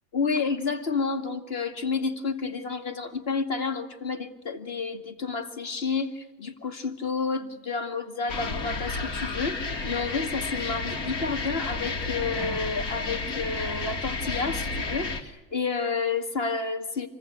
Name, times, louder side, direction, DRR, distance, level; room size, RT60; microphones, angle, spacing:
voice 1, 0.1-17.1, left 4 dB, 45° left, 6 dB, 2.3 m, -30 dB
sound 1, 8.3-15.2, left 3 dB, 85° left, 2.6 m, -31 dB
28.5 x 22.0 x 9.2 m, 1.1 s
omnidirectional pair, 1.5 m